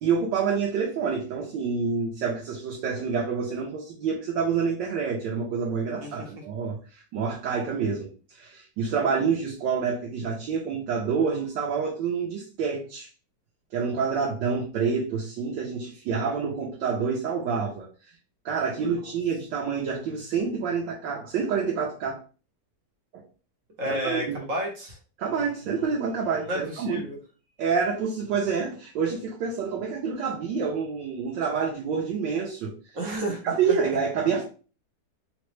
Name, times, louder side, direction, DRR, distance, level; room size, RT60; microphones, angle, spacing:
voice 1, 0.0-13.1 13.7-17.9 18.4-22.2 23.1-23.2 23.8-24.4 25.2-27.0 27.6-32.7 33.4-34.4, right 6 dB, 85° right, -2 dB, 1.3 m, -27 dB
voice 2, 23.8-25.0 26.5-27.2 32.9-33.8, right 1 dB, 55° right, -1 dB, 1.1 m, -32 dB
3.9 x 2.1 x 3.1 m, 0.37 s
omnidirectional pair, 1.9 m